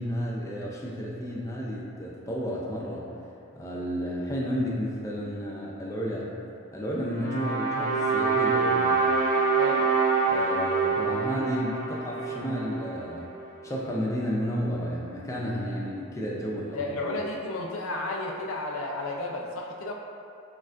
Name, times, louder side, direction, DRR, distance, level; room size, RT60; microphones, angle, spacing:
voice 1, 0.0-3.0 3.5-6.3 6.7-9.1 10.3-13.3 13.6-17.2, equal, 15° left, -4 dB, 0.4 m, -32 dB
sound 1, 7.1-13.3, right 4 dB, 30° right, 0.8 m, -26 dB
voice 2, 9.5-9.9 16.7-19.9, left 2 dB, 85° left, 0 dB, 0.5 m, -32 dB
6.3 x 2.4 x 2.5 m, 2.5 s
head